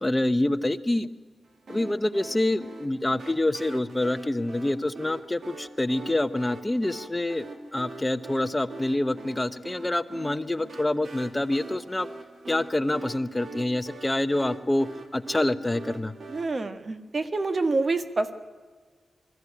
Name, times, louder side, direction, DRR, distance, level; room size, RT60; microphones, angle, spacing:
voice 1, 0.0-1.1 1.7-7.5 7.7-12.1 12.5-16.1, left 1 dB, 20° left, 11 dB, 0.9 m, -26 dB
sound 1, 1.7-16.4, right 3 dB, 75° right, 2.5 m, -43 dB
voice 2, 16.3-18.3, right 3 dB, 45° right, 9 dB, 1.5 m, -27 dB
21.5 x 14.5 x 9.9 m, 1.5 s
cardioid pair, 75°, 0 cm